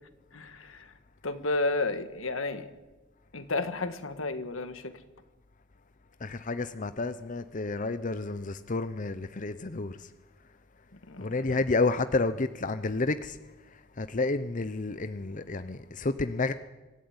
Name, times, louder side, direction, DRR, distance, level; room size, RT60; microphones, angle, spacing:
voice 1, 0.3-0.9 1.2-2.7 3.3-4.9 11.1-11.6, left 2 dB, 85° left, 1.8 m, -32 dB
voice 2, 6.2-10.1 11.2-13.4 13.7-16.5, left 3 dB, 40° left, 0.7 m, -30 dB
25.0 x 14.0 x 9.6 m
head